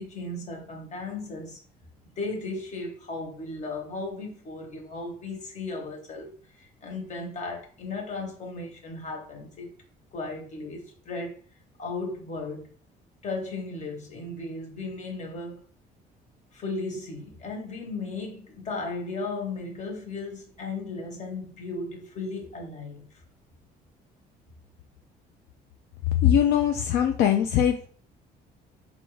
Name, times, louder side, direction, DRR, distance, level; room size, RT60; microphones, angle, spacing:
voice 1, 0.0-1.6 2.2-9.7 10.1-11.4 11.8-12.7 13.2-15.6 16.5-23.1, left 3 dB, 45° left, 1.3 m, -36 dB
voice 2, 26.2-27.9, left 10 dB, 75° left, 0.4 m, -21 dB
4.2 x 2.6 x 3.2 m
cardioid pair, 110°, 17 cm